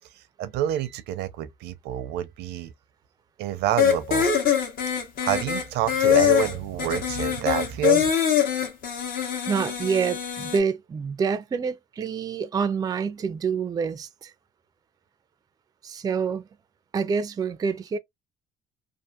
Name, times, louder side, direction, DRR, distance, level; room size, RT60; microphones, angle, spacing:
voice 1, 0.2-2.7 3.4-4.3 5.2-8.1, right 11 dB, 85° right, 0.5 m, -28 dB
sound 1, 3.8-10.6, left 9 dB, 60° left, 1.0 m, -23 dB
voice 2, 9.5-14.3 15.8-16.4 16.9-18.0, right 6 dB, 25° right, 0.3 m, -27 dB
2.6 x 2.5 x 2.3 m
cardioid pair, 110°, 17 cm